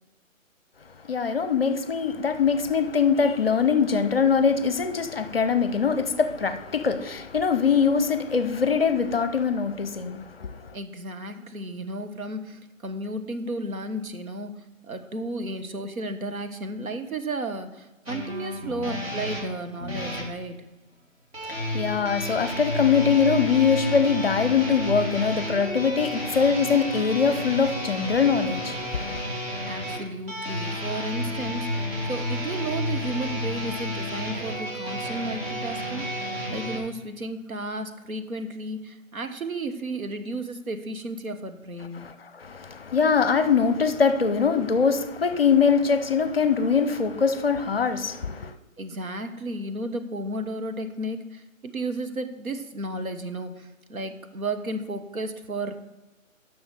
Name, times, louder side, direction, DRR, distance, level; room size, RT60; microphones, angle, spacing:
voice 1, 1.1-10.7 21.4-29.2 42.0-48.5, left 6 dB, 45° left, 0.6 m, -23 dB
voice 2, 10.7-14.5 14.8-20.6 29.6-42.1 48.8-55.8, right 1 dB, 90° right, 1.2 m, -33 dB
sound 1, 18.1-20.3 21.3-36.8, equal, 45° right, 2.4 m, -31 dB
7.3 x 6.1 x 6.6 m
hypercardioid pair, 165°, 41 cm